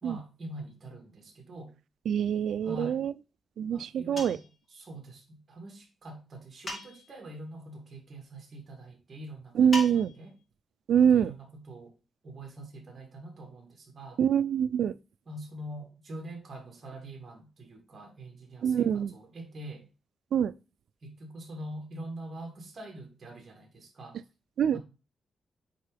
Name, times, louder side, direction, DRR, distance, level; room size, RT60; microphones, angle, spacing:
voice 1, 0.0-1.8 2.6-3.0 3.7-10.4 11.0-11.9 12.2-14.2 15.3-19.9 21.0-24.2 24.7-24.8, right 1 dB, 35° right, 2.2 m, -44 dB
voice 2, 2.1-3.1 3.6-4.4 9.5-10.1 10.9-11.3 14.2-14.9 18.6-19.1 20.3-20.5 24.6-24.8, right 8 dB, 75° right, 0.4 m, -25 dB
sound 1, 4.2-4.6 6.7-7.2 9.7-10.3, left 1 dB, 35° left, 2.0 m, -37 dB
9.2 x 3.7 x 3.4 m
wide cardioid pair, 175°, 0 cm